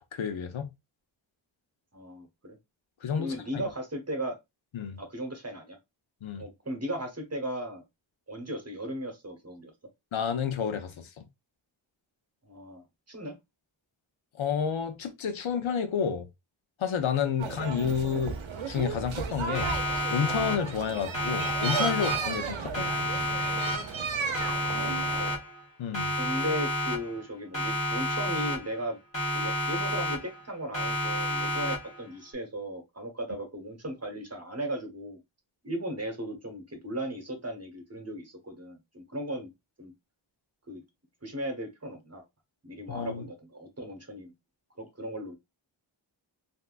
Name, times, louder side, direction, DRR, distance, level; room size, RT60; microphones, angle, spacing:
voice 1, 0.1-0.7 3.0-3.6 4.7-5.0 6.2-6.4 10.1-11.2 14.4-16.3 16.8-18.4 18.7-19.8 20.1-23.2 25.8-26.1 42.9-43.2, left 7 dB, 75° left, 0.7 m, -30 dB
voice 2, 1.9-2.6 3.2-4.4 5.0-5.8 6.4-7.8 8.3-9.7 12.4-13.3 20.9-21.0 22.7-22.8 24.6-25.3 26.2-29.0 29.3-35.2 35.6-39.5 39.8-39.9 40.7-40.8 41.2-42.2 42.6-44.3 44.8-45.3, right 1 dB, 30° right, 1.1 m, -36 dB
sound 1, 17.4-25.3, right 6 dB, 75° right, 0.7 m, -34 dB
Siren, 19.5-20.9 21.1-22.5 22.7-24.1 24.3-25.7 25.9-27.3 27.5-28.9 29.1-30.5 30.7-32.1, left 1 dB, 40° left, 1.7 m, -30 dB
3.4 x 2.7 x 2.4 m
wide cardioid pair, 55°, 47 cm